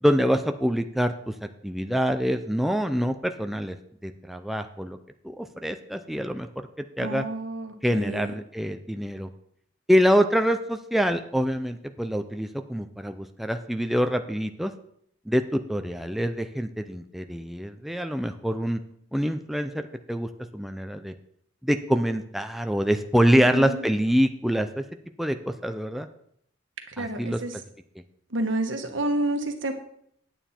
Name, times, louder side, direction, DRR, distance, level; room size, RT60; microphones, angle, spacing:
voice 1, 0.0-3.8 4.0-5.0 5.2-6.7 7.0-7.2 7.8-9.3 9.9-14.7 15.3-18.8 19.1-19.8 20.1-21.1 21.6-24.8 25.2-26.1 27.0-27.4, equal, ahead, 6 dB, 0.5 m, -25 dB
voice 2, 7.0-8.3 23.3-23.8 26.9-27.5 28.3-29.7, right 1 dB, 80° right, 5 dB, 1.4 m, -29 dB
9.1 x 9.0 x 4.4 m, 0.69 s
head